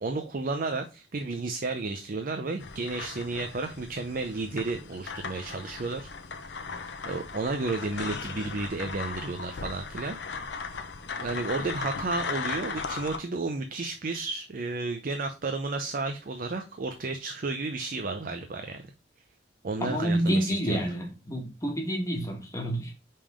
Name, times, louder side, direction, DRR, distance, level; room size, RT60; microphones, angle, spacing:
voice 1, 0.0-6.1 7.0-10.2 11.2-18.9 19.6-20.8, right 3 dB, 50° right, 0.5 m, -32 dB
sound 1, 2.6-13.2, left 4 dB, 70° left, 0.7 m, -37 dB
voice 2, 19.8-22.9, right 1 dB, 20° left, 1.3 m, -28 dB
5.4 x 3.6 x 4.8 m
head